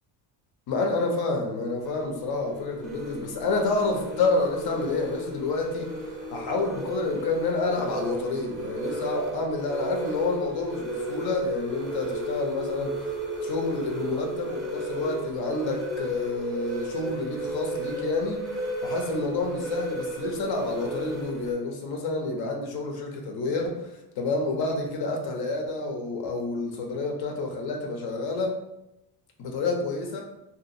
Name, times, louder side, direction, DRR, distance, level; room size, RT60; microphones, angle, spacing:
voice 1, 0.7-5.9 6.3-13.1 13.4-28.6 29.4-30.2, left 3 dB, 55° left, 2 dB, 0.7 m, -29 dB
sound 1, 1.8-21.5, right 1 dB, ahead, 0.6 m, -34 dB
2.8 x 2.5 x 2.5 m, 0.89 s
cardioid pair, 115°, 45 cm